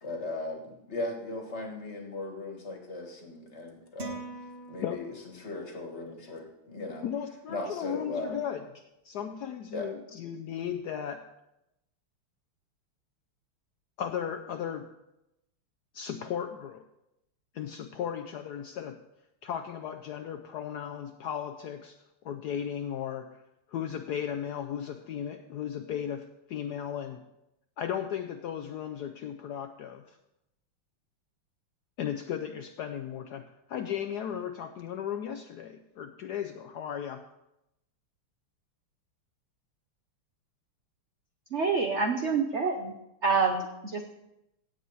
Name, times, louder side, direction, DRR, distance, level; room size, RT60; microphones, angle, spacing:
voice 1, 0.0-4.2 4.7-5.1 5.4-7.1 7.5-8.4 9.7-10.2, left 2 dB, 35° left, 2 dB, 1.7 m, -37 dB
sound 1, 4.0-5.5, right 2 dB, 35° right, 1.2 m, -42 dB
voice 2, 7.0-8.7 9.0-11.3 14.0-14.9 15.9-16.8 17.5-19.0 19.4-23.4 23.7-27.2 27.8-30.2 32.0-37.2, left 9 dB, 85° left, 7 dB, 0.8 m, -36 dB
voice 3, 41.5-42.9 43.2-44.2, right 4 dB, 65° right, 4 dB, 0.7 m, -27 dB
17.0 x 7.8 x 4.1 m, 0.88 s
omnidirectional pair, 2.4 m